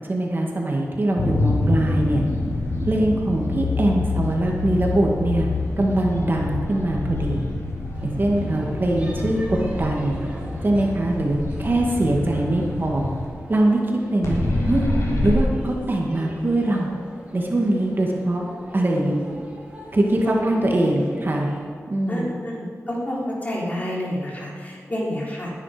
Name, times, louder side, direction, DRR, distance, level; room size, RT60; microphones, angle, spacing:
voice 1, 0.1-2.2 2.8-5.5 5.8-7.5 8.0-10.2 10.6-13.1 13.5-14.9 15.2-16.9 17.3-18.4 18.7-19.2 19.9-21.5 21.9-22.3, right 1 dB, 40° right, -1 dB, 2.2 m, -22 dB
sound 1, 1.2-13.3 14.2-15.4, left 2 dB, 70° left, 4.4 m, -26 dB
sound 2, 7.9-21.6, equal, 25° right, 4.0 m, -42 dB
voice 2, 18.7-19.3 20.2-20.4 20.9-21.1 22.1-25.5, left 1 dB, 30° left, -4 dB, 4.1 m, -30 dB
20.5 x 10.0 x 5.2 m, 2.1 s
wide cardioid pair, 105°, 5 cm